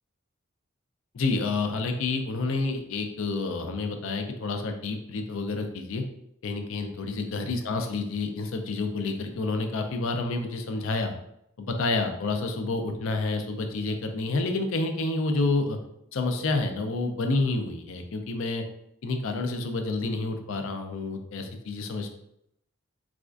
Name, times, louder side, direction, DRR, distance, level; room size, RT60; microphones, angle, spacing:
voice 1, 1.1-6.0 6.4-11.1 11.6-15.8 16.1-18.6 19.0-22.1, left 3 dB, 70° left, 5 dB, 0.5 m, -29 dB
4.1 x 2.4 x 2.4 m, 0.77 s
head